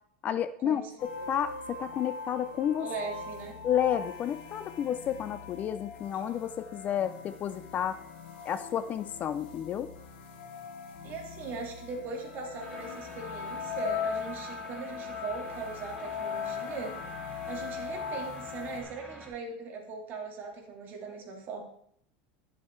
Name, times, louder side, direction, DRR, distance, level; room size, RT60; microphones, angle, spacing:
voice 1, 0.2-2.9 3.6-8.0 8.5-9.9, left 9 dB, 30° left, 14 dB, 0.4 m, -31 dB
sound 1, 1.0-18.8, left 6 dB, 75° left, 2.2 m, -40 dB
voice 2, 2.8-3.6 11.0-17.1 17.5-21.6, right 4 dB, 35° right, 1 dB, 2.7 m, -39 dB
sound 2, 12.6-19.3, right 2 dB, 5° right, 2.8 m, -47 dB
10.5 x 7.3 x 4.5 m, 0.67 s
supercardioid pair, 145°, 6 cm